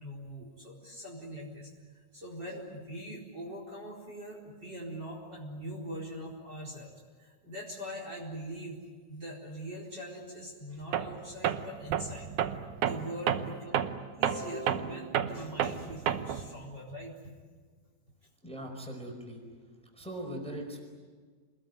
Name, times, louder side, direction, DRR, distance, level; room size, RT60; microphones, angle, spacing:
voice 1, 0.0-6.9 7.2-8.8 9.1-12.3 12.8-17.1, equal, 25° right, -1 dB, 4.6 m, -42 dB
Tools, 10.9-11.2 11.4-16.5, right 9 dB, 70° right, 2.1 m, -31 dB
voice 2, 18.4-19.4 19.9-20.8, right 1 dB, ahead, 2 dB, 4.5 m, -40 dB
28.0 x 21.0 x 9.4 m, 1.5 s
omnidirectional pair, 4.3 m